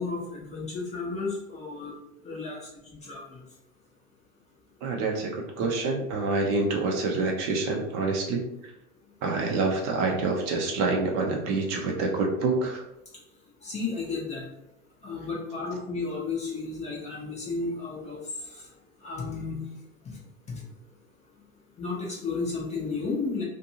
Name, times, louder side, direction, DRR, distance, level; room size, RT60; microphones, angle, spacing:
voice 1, 0.0-1.9 2.2-2.6 2.9-3.2 5.6-5.7 13.6-14.4 15.0-18.2 19.0-19.6 21.8-23.4, left 4 dB, 15° left, -4 dB, 0.5 m, -32 dB
voice 2, 4.8-8.4 9.2-12.8, right 3 dB, 40° right, 1 dB, 0.6 m, -27 dB
2.6 x 2.5 x 2.7 m, 0.87 s
hypercardioid pair, 115°, 42 cm